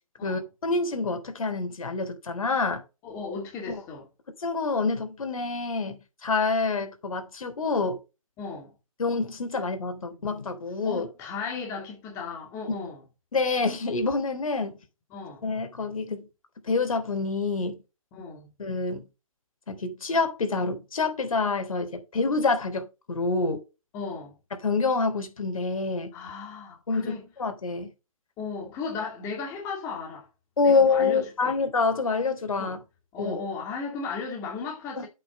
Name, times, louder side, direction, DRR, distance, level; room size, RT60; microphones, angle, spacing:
voice 1, 0.2-2.8 3.7-3.8 4.4-8.0 9.0-11.1 13.3-14.8 15.4-16.3 16.6-17.8 18.6-19.0 19.7-23.6 24.6-26.1 26.9-27.1 27.4-27.9 30.6-32.8 33.2-33.4 35.0-35.1, left 4 dB, 70° left, 3.3 m, -27 dB
voice 2, 3.0-4.0 8.4-8.7 10.0-10.2 10.8-13.0 15.1-15.4 18.1-18.5 23.9-24.4 26.1-27.2 28.4-30.3 30.6-31.6 32.6-32.8 33.1-35.1, left 4 dB, 15° left, 2.2 m, -36 dB
8.5 x 5.7 x 6.1 m
hypercardioid pair, 165°, 18 cm